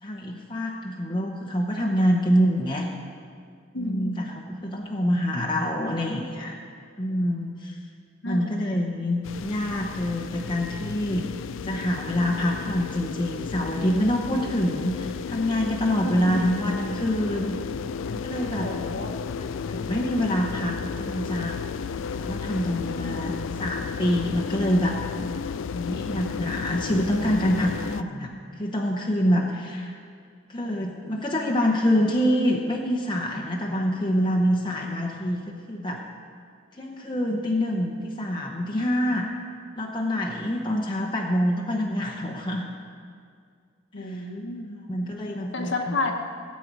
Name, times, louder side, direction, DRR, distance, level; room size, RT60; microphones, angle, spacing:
voice 1, 0.0-2.9 3.7-6.5 7.0-7.8 8.2-11.3 11.6-17.6 18.1-18.7 19.7-21.6 22.0-23.3 23.6-25.1 25.7-30.0 30.5-36.0 36.7-39.3 39.8-42.7 44.0-44.2 44.9-46.0, equal, 25° left, -1 dB, 0.9 m, -26 dB
voice 2, 3.7-4.1 8.2-8.5 16.0-16.4 18.6-19.2 22.8-23.2 43.9-44.8 45.5-46.1, left 2 dB, 65° left, 3 dB, 1.0 m, -31 dB
sound 1, 9.2-28.0, left 6 dB, 85° left, 0.4 m, -33 dB
16.5 x 8.4 x 4.7 m, 2.2 s
head